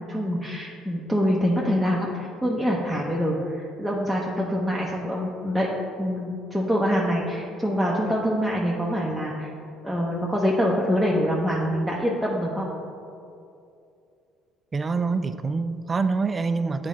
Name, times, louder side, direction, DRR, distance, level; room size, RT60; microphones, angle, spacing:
voice 1, 0.0-5.7 6.0-9.5 9.8-12.7, equal, ahead, -4 dB, 0.8 m, -25 dB
voice 2, 14.7-16.9, right 4 dB, 30° right, 10 dB, 0.3 m, -25 dB
8.1 x 4.1 x 3.8 m, 2.5 s
supercardioid pair, 85°, 0 cm